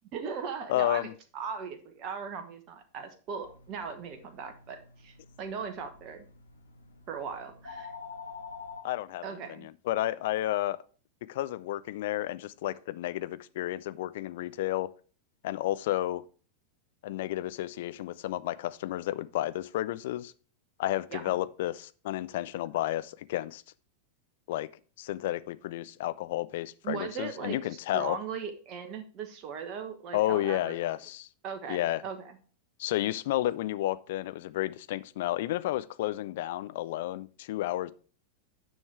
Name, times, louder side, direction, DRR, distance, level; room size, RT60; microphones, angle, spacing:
voice 1, 0.1-6.2 7.1-7.9 9.2-9.7 21.1-21.2 26.8-30.9 31.4-32.4, right 6 dB, 35° right, 1.2 m, -39 dB
voice 2, 0.7-1.1 8.8-9.2 9.6-10.8 11.3-14.9 15.4-16.2 17.0-20.3 20.8-23.6 24.5-24.7 25.0-28.2 30.1-31.3 31.7-32.0 32.8-37.9, left 14 dB, 55° left, 0.5 m, -31 dB
sound 1, 3.4-8.8, left 5 dB, 75° left, 1.3 m, -47 dB
9.8 x 6.3 x 3.4 m
figure-of-eight pair, 90°, 0 cm